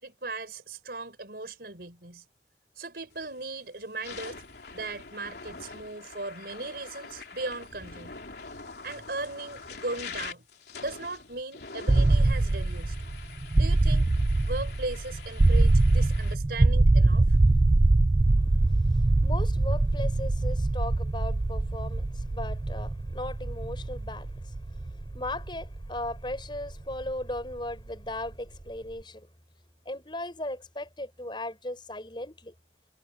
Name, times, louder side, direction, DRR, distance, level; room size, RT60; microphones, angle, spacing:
voice 1, 0.0-2.2 2.7-4.4 4.7-8.2 8.8-10.4 10.8-13.0 13.6-14.1 14.5-17.4, right 2 dB, 60° right, 5.2 m, -38 dB
sound 1, 3.2-3.4 3.9-16.3, left 4 dB, 65° left, 3.3 m, -44 dB
sound 2, 11.9-27.7, right 2 dB, 20° right, 0.3 m, -24 dB
voice 2, 18.4-29.3 29.9-32.5, left 1 dB, 25° left, 6.0 m, -37 dB
head